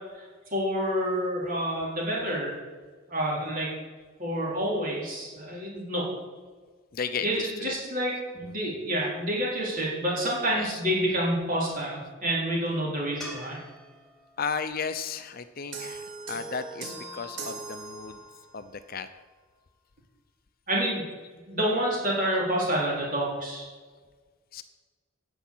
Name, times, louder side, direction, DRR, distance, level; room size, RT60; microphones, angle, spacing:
voice 1, 0.5-2.6 3.1-3.7 4.2-6.1 7.2-13.6 20.7-21.0 21.5-23.7, equal, 40° right, -5 dB, 4.3 m, -28 dB
voice 2, 6.9-7.8 8.4-8.5 10.5-10.8 14.4-18.2 18.5-19.1 24.5-24.6, left 5 dB, 45° left, 10 dB, 0.6 m, -34 dB
sound 1, 13.2-16.4 19.7-19.8, left 1 dB, ahead, 2.0 m, -47 dB
sound 2, 15.7-18.6, right 3 dB, 60° right, 2.4 m, -39 dB
9.9 x 7.1 x 8.5 m, 1.5 s
head